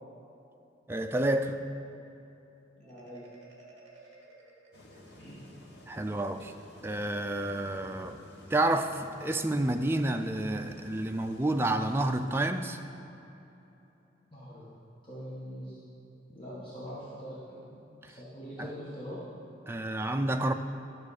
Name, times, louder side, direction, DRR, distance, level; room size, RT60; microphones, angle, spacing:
voice 1, 0.9-1.6 5.9-6.5 6.8-8.2 8.5-12.8 18.0-18.1 18.6-18.7 19.7-20.5, right 1 dB, 10° right, 6 dB, 0.3 m, -29 dB
voice 2, 2.8-3.3 5.2-5.4 14.3-14.6 15.0-15.8 16.3-17.8 18.1-19.2, equal, 25° left, -9 dB, 1.4 m, -43 dB
Marimba xylophone, 2.8-5.6, right 3 dB, 35° right, 1.3 m, -56 dB
sound 1, 4.7-12.3, left 1 dB, 60° left, 1.2 m, -53 dB
12.0 x 6.4 x 4.9 m, 3.0 s
head